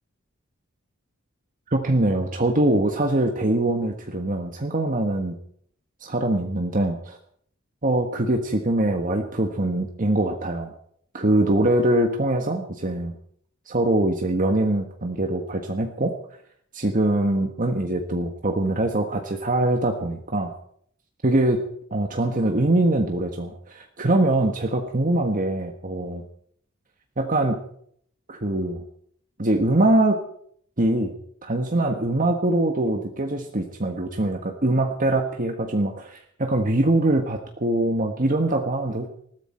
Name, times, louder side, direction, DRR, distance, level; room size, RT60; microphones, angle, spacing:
voice 1, 1.7-5.4 6.0-7.2 7.8-10.7 11.1-13.1 13.7-16.2 16.7-20.5 21.2-21.6 21.9-26.2 27.2-27.6 28.3-28.8 29.4-30.2 30.8-31.1 31.4-39.1, right 1 dB, 40° right, 4 dB, 1.4 m, -23 dB
20.5 x 14.5 x 4.4 m, 0.63 s
head